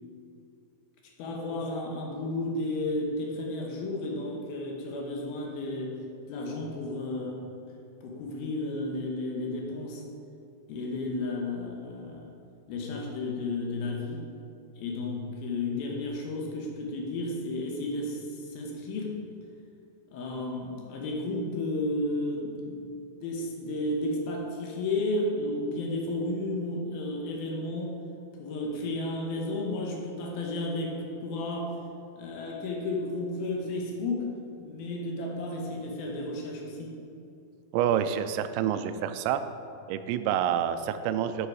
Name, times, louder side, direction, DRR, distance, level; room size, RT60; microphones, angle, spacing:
voice 1, 1.2-6.0 6.3-7.4 8.0-10.0 10.7-12.3 12.7-14.2 14.8-19.2 20.1-22.9 23.2-28.0 28.4-31.8 32.2-34.3 34.6-37.0, left 2 dB, 70° left, 0 dB, 2.7 m, -32 dB
voice 2, 37.7-39.4 39.9-41.5, right 9 dB, 85° right, 10 dB, 2.7 m, -27 dB
10.0 x 6.5 x 4.8 m, 2.6 s
omnidirectional pair, 5.0 m